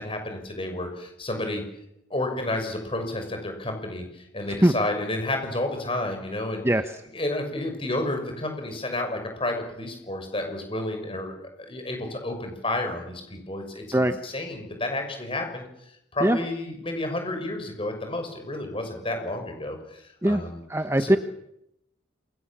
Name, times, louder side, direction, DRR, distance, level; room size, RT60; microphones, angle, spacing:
voice 1, 0.0-1.6 2.1-6.6 7.1-20.6 21.0-21.2, left 1 dB, 25° left, 5 dB, 6.3 m, -31 dB
voice 2, 20.7-21.2, right 1 dB, 15° right, 9 dB, 0.9 m, -20 dB
28.5 x 22.0 x 7.4 m, 0.81 s
head